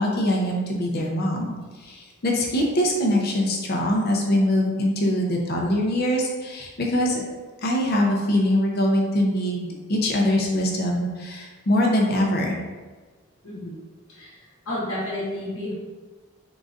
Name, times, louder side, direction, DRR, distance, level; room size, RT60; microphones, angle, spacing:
voice 1, 0.0-1.6 1.8-7.2 7.6-12.6, left 1 dB, 45° left, -1 dB, 0.6 m, -23 dB
voice 2, 13.4-13.8 14.1-15.7, left 1 dB, 70° left, -6 dB, 1.0 m, -31 dB
3.8 x 3.7 x 2.5 m, 1.3 s
head